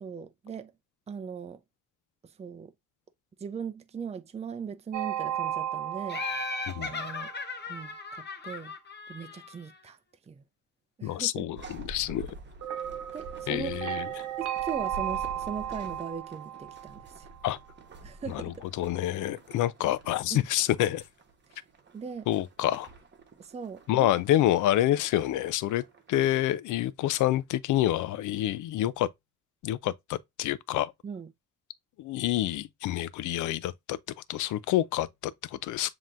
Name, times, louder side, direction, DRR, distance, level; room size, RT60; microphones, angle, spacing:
voice 1, 0.0-0.7 1.1-1.6 2.4-2.7 3.4-6.2 6.8-7.3 7.7-8.7 9.1-10.0 10.3-10.4 11.0-11.5 13.1-13.8 14.4-17.3 18.0-18.7 20.3-20.5 21.5-21.6 21.9-22.3 23.4-24.1 31.0-31.3, right 6 dB, 20° right, 0.5 m, -39 dB
sound 1, 4.9-7.9 12.6-17.6, right 11 dB, 80° right, 0.9 m, -35 dB
Laughter, 6.1-9.7, left 4 dB, 35° left, 0.8 m, -37 dB
voice 2, 11.0-12.3 13.5-14.3 17.4-17.6 18.3-21.0 22.3-22.9 23.9-29.1 29.6-30.9 32.0-34.0 34.3-35.9, left 13 dB, 80° left, 0.5 m, -28 dB
sound 2, 11.6-26.4, right 2 dB, 35° right, 1.1 m, -48 dB
7.2 x 3.0 x 2.5 m
cardioid pair, 90°, 30 cm